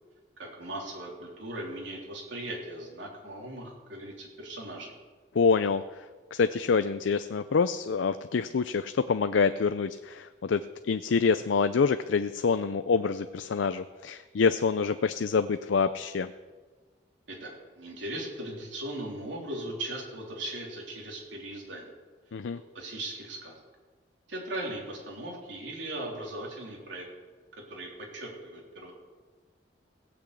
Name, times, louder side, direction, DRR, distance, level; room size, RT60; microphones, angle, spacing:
voice 1, 0.4-4.9 17.3-21.9 22.7-23.6 24.3-27.1 27.7-28.9, right 1 dB, 80° right, -2 dB, 3.6 m, -38 dB
voice 2, 5.3-6.0 6.3-10.6 10.9-16.3 22.3-22.6, left 5 dB, 90° left, 11 dB, 0.5 m, -26 dB
17.5 x 6.2 x 8.3 m, 1.4 s
head